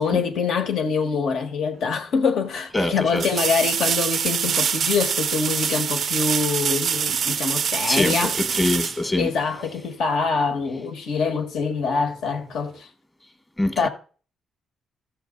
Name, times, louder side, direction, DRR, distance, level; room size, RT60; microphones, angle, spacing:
voice 1, 0.0-8.3 9.2-12.9 13.8-13.9, left 5 dB, 75° left, 1.6 m, -24 dB
sound 1, 1.8-1.9 3.2-9.8 12.6-12.7, right 7 dB, 55° right, 0.4 m, -25 dB
voice 2, 2.7-3.2 7.9-9.3 13.6-13.9, left 2 dB, 20° left, 1.3 m, -24 dB
14.5 x 6.8 x 3.9 m
cardioid pair, 90°, 0 cm